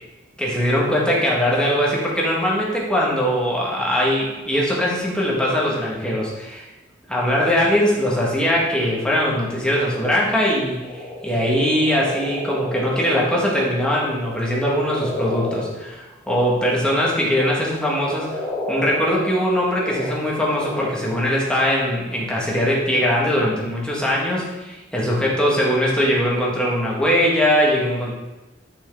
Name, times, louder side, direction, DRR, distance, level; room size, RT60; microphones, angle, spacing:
voice 1, 0.4-6.7 7.1-28.1, equal, 5° left, -4 dB, 1.5 m, -21 dB
sound 1, 10.8-15.6 16.4-21.1, left 1 dB, 20° left, 2.1 m, -32 dB
6.3 x 6.2 x 3.6 m, 1.1 s
head